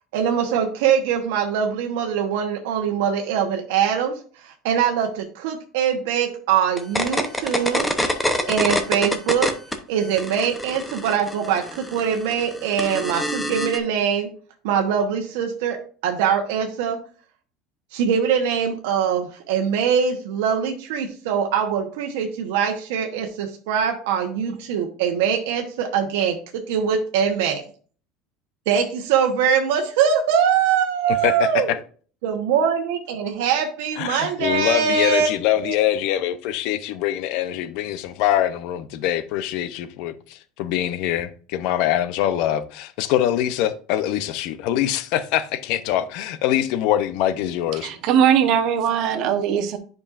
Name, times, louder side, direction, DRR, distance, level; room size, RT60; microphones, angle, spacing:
voice 1, 0.1-7.9 8.5-9.5 9.9-14.3 14.6-15.8 16.0-17.0 17.9-26.4 26.7-27.6 28.7-31.7 32.2-35.7, right 7 dB, 90° right, 1.0 m, -22 dB
sound 1, 6.8-9.8 10.1-13.8, left 1 dB, 5° left, 0.7 m, -25 dB
voice 2, 31.1-31.8 34.0-47.9, left 12 dB, 60° left, 0.6 m, -24 dB
voice 3, 47.8-49.8, right 9 dB, 50° right, 0.9 m, -20 dB
9.8 x 5.3 x 2.5 m
cardioid pair, 160°, 0 cm